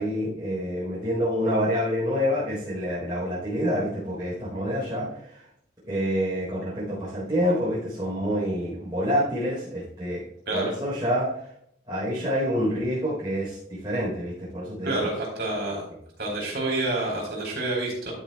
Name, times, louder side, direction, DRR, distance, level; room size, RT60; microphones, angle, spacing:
voice 1, 0.0-5.5 5.8-10.2 10.5-11.3 11.9-15.0, equal, 25° right, -9 dB, 4.0 m, -27 dB
voice 2, 14.8-15.8 16.2-18.1, right 2 dB, 60° right, -1 dB, 4.1 m, -28 dB
12.0 x 8.7 x 2.4 m, 0.70 s
head